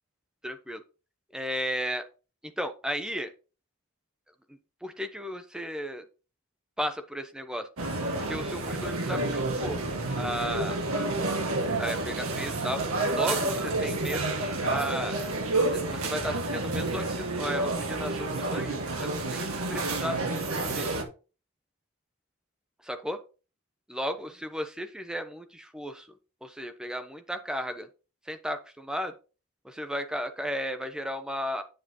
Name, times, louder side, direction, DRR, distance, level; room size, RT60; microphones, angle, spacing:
voice 1, 0.4-0.8 1.3-2.0 2.4-3.3 4.8-6.0 6.8-7.7 8.1-9.8 10.2-10.8 11.8-12.8 13.1-15.2 15.7-20.9 22.8-23.2 23.9-26.1 26.4-27.9 28.3-29.1 29.6-31.6, equal, 5° right, 8 dB, 0.8 m, -34 dB
sound 1, 7.8-21.0, right 2 dB, 75° right, 1.9 m, -29 dB
8.8 x 7.6 x 3.0 m, 0.33 s
head